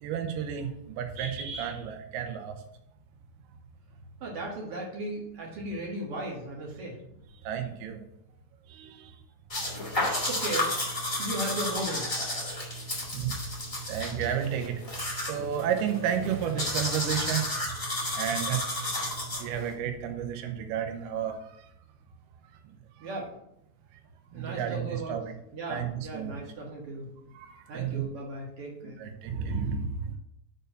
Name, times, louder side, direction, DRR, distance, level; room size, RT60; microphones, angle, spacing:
voice 1, 0.0-2.5 7.5-8.0 8.7-9.1 13.1-13.5 13.9-14.8 15.2-17.5 18.1-18.6 19.4-21.6 23.0-23.1 24.3-25.2 25.7-26.4 27.3-28.1 28.8-30.2, right 8 dB, 80° right, 5 dB, 2.8 m, -32 dB
voice 2, 4.2-7.0 10.3-10.7 11.2-12.2 23.0-23.3 24.3-25.2 25.5-27.1 27.7-29.0, right 1 dB, 55° right, -2 dB, 1.7 m, -36 dB
sound 1, 9.5-19.7, left 1 dB, 25° left, 0.7 m, -32 dB
6.7 x 4.4 x 6.5 m, 0.76 s
omnidirectional pair, 4.7 m